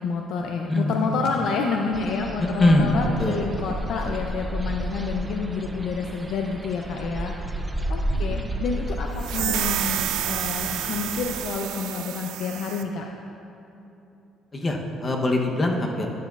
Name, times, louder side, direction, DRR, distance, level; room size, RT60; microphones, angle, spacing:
voice 1, 0.0-7.3 7.9-13.0, left 4 dB, 60° left, 2 dB, 0.5 m, -29 dB
voice 2, 0.7-1.3 2.4-3.4 8.1-8.6 14.5-16.1, left 1 dB, 20° left, 1 dB, 0.8 m, -23 dB
sound 1, 1.9-11.5, right 1 dB, 10° right, 0.4 m, -32 dB
sound 2, 9.2-12.9, right 11 dB, 85° right, 0.4 m, -29 dB
12.0 x 9.4 x 2.4 m, 2.9 s
cardioid pair, 155°, 0 cm